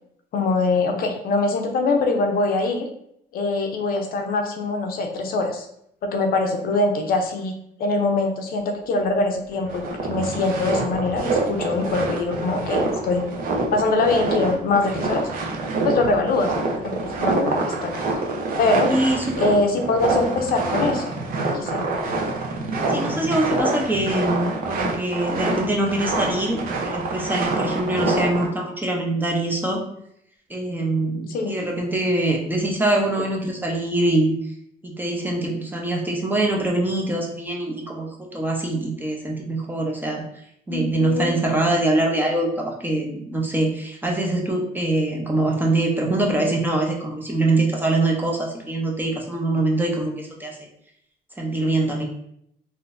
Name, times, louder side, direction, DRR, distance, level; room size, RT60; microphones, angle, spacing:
voice 1, 0.3-2.9 3.3-5.7 6.0-7.5 7.8-13.3 13.7-15.3 15.8-18.2 18.6-18.9 19.4-21.1 21.5-21.8 31.3-31.6 40.7-41.3, left 3 dB, 60° left, 4 dB, 0.6 m, -23 dB
sound 1, 8.8-9.1 9.5-28.5, right 3 dB, 60° right, 0.8 m, -26 dB
voice 2, 18.9-19.5 22.9-29.8 30.5-34.4 34.8-40.2 40.7-50.6 51.4-52.0, right 2 dB, 10° right, 0 dB, 0.6 m, -23 dB
3.6 x 2.6 x 2.5 m, 0.73 s
cardioid pair, 110°, 17 cm